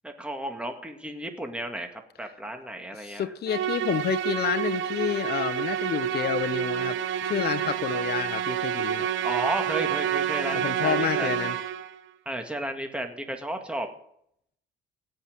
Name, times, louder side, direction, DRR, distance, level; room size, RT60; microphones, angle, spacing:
voice 1, 0.0-3.3 9.2-11.4 12.3-13.9, right 1 dB, 5° right, 4 dB, 2.0 m, -33 dB
voice 2, 3.0-9.1 10.5-11.6, left 9 dB, 55° left, 11 dB, 0.8 m, -29 dB
Musical instrument, 3.5-12.0, right 10 dB, 80° right, 1.1 m, -28 dB
17.0 x 5.8 x 9.6 m, 0.71 s
cardioid pair, 90°, 20 cm